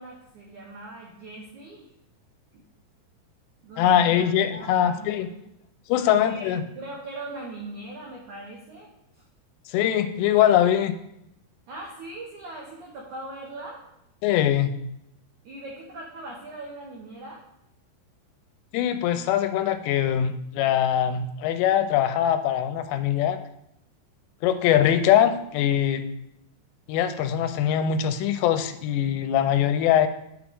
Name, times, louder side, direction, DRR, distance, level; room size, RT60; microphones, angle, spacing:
voice 1, 0.0-1.9 2.5-2.6 3.6-5.3 6.0-6.5 6.7-9.2 11.7-13.8 15.4-17.4, right 2 dB, 85° right, 0 dB, 1.7 m, -40 dB
voice 2, 3.8-5.3 5.9-6.6 9.7-10.9 14.2-14.7 18.7-23.4 24.4-26.0 26.9-30.1, left 10 dB, 90° left, 9 dB, 2.8 m, -22 dB
9.5 x 6.1 x 3.5 m, 0.80 s
omnidirectional pair, 4.9 m